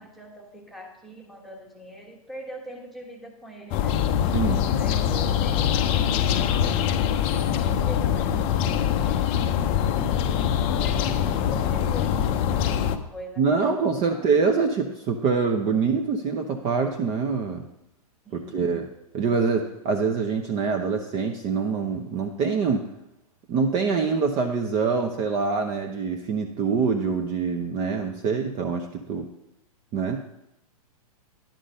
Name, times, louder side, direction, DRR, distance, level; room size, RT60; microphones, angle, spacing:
voice 1, 0.0-4.0 4.7-7.0 7.6-9.4 10.4-13.8 14.1-14.3 18.2-18.7, right 1 dB, ahead, 0 dB, 1.2 m, -42 dB
sound 1, 3.7-13.0, left 9 dB, 30° left, 0.5 m, -23 dB
voice 2, 13.4-17.6 18.3-18.9 19.1-22.8 23.5-29.3 29.9-30.2, right 5 dB, 30° right, 3 dB, 0.7 m, -25 dB
10.5 x 3.8 x 6.4 m, 0.83 s
hypercardioid pair, 125°, 19 cm